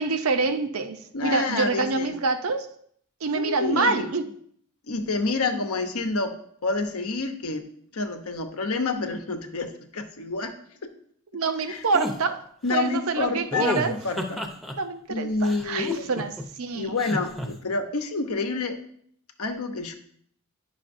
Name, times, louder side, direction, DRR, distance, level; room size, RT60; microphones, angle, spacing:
voice 1, 0.0-2.7 3.2-4.3 11.3-12.4 12.7-14.0 14.8-17.0, right 4 dB, 75° right, 9 dB, 0.6 m, -26 dB
voice 2, 1.1-2.1 3.3-4.1 4.9-6.3 6.6-7.6 7.9-10.5 10.8-10.9 11.7-11.8 12.6-14.4 15.1-16.1 16.7-18.8 19.4-19.9, left 3 dB, 85° left, 7 dB, 0.9 m, -28 dB
sound 1, 11.9-12.2 13.5-14.7 15.4-16.4 17.0-17.5, left 1 dB, ahead, 0.6 m, -30 dB
9.7 x 5.7 x 2.6 m, 0.64 s
head